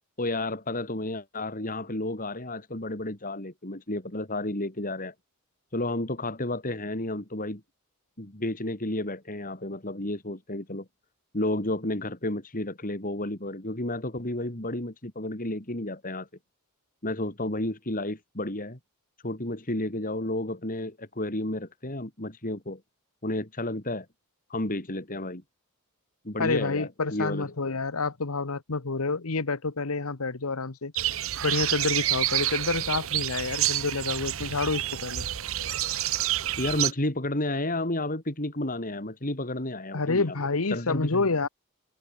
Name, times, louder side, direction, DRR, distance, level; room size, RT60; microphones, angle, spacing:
voice 1, 0.2-5.1 5.7-7.6 8.2-10.9 11.3-16.3 17.0-18.8 19.2-22.8 23.2-24.1 24.5-25.4 26.2-27.5 36.6-40.4 40.7-41.2, left 1 dB, 40° left, 3.5 m, -31 dB
voice 2, 26.4-30.9 31.4-35.3 39.9-41.5, left 3 dB, 80° left, 1.2 m, -28 dB
sound 1, 31.0-36.9, right 13 dB, 65° right, 0.9 m, -28 dB
head